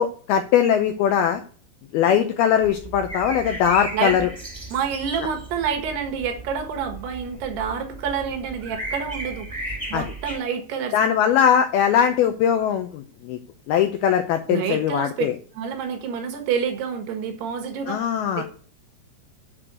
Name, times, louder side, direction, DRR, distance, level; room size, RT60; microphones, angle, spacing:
voice 1, 0.0-1.4 1.9-4.3 9.9-10.0 10.9-13.4 13.7-15.3 17.9-18.4, left 9 dB, 85° left, 2.2 m, -20 dB
sound 1, 2.6-10.4, right 1 dB, 15° right, 1.4 m, -35 dB
voice 2, 3.9-4.3 4.7-9.5 9.9-11.0 14.5-15.3 15.6-18.0 18.4-18.5, right 7 dB, 70° right, 3.3 m, -28 dB
7.7 x 6.1 x 7.9 m
omnidirectional pair, 5.2 m